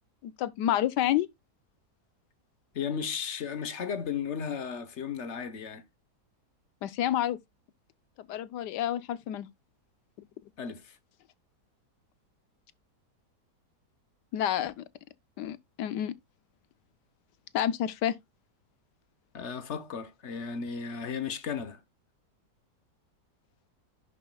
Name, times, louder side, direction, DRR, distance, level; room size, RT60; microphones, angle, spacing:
voice 1, 0.2-1.3 6.8-7.4 8.3-9.5 14.3-14.8 15.4-16.1 17.5-18.2, left 11 dB, 90° left, 1.3 m, -29 dB
voice 2, 2.7-5.8 10.6-11.0 19.3-21.8, left 6 dB, 50° left, 1.0 m, -35 dB
11.0 x 6.1 x 2.3 m
omnidirectional pair, 1.8 m